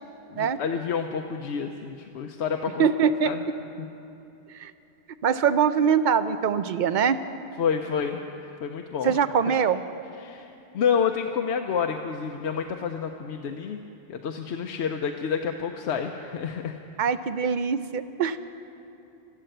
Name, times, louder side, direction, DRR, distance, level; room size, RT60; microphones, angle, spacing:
voice 1, 0.3-2.9 3.2-3.4 3.8-3.9 7.6-9.2 9.5-9.6 10.2-10.5 10.7-13.8 14.1-16.8, left 7 dB, 90° left, 4 dB, 1.0 m, -29 dB
voice 2, 2.8-3.4 4.5-4.7 5.2-7.2 9.0-9.8 17.0-18.4, right 7 dB, 55° right, 12 dB, 0.6 m, -23 dB
13.5 x 12.5 x 7.8 m, 3.0 s
omnidirectional pair, 1.1 m